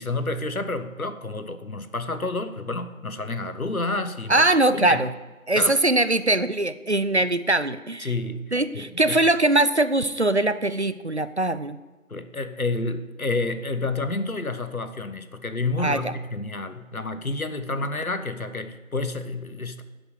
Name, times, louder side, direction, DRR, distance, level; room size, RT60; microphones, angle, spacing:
voice 1, 0.0-4.5 4.7-5.0 5.5-5.7 8.0-9.2 12.1-19.8, left 2 dB, 80° left, 11 dB, 1.4 m, -29 dB
voice 2, 4.3-5.1 5.5-8.1 8.5-11.8 15.8-16.1, right 2 dB, 50° right, 13 dB, 0.7 m, -22 dB
11.5 x 7.9 x 8.2 m, 1.2 s
figure-of-eight pair, 180°, 42 cm